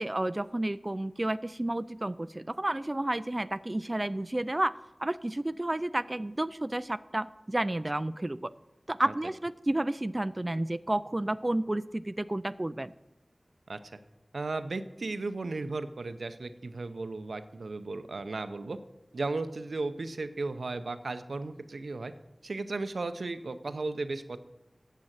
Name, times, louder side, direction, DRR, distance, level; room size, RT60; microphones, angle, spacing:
voice 1, 0.0-4.7 5.0-8.5 8.9-12.9, right 1 dB, 30° right, 14 dB, 0.3 m, -31 dB
voice 2, 13.7-14.0 14.3-18.8 19.1-22.1 22.4-24.4, right 3 dB, 85° right, 10 dB, 0.6 m, -35 dB
9.1 x 7.5 x 7.3 m, 0.96 s
wide cardioid pair, 60°, 0 cm